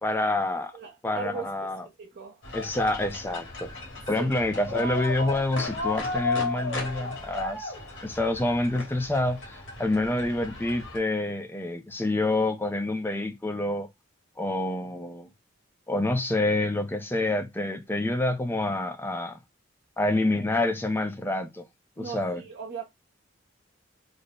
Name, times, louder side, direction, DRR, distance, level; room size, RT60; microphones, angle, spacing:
voice 1, 0.0-0.7 1.0-1.8 2.5-3.7 4.1-7.7 8.0-13.9 14.4-15.3 15.9-19.4 20.0-21.6 22.0-22.4, left 2 dB, 10° left, 0.5 m, -27 dB
voice 2, 0.7-1.7 2.0-2.4 4.1-4.3 22.0-22.8, right 5 dB, 55° right, 0.6 m, -38 dB
sound 1, 2.4-11.0, left 3 dB, 70° left, 1.5 m, -34 dB
3.3 x 2.0 x 4.0 m
head